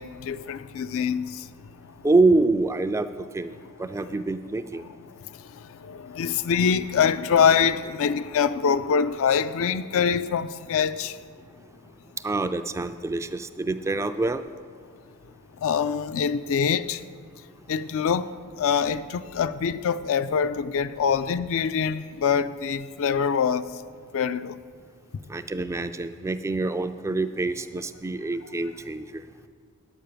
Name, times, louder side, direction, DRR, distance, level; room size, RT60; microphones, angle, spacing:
voice 1, 0.0-1.9 4.8-11.2 15.6-17.0 17.7-23.6 24.1-24.6, left 6 dB, 65° left, 0.4 m, -25 dB
voice 2, 2.0-3.1 3.3-3.5 3.8-4.8 12.2-14.4 25.3-29.2, right 2 dB, 15° right, 0.3 m, -25 dB
9.0 x 8.9 x 6.7 m
head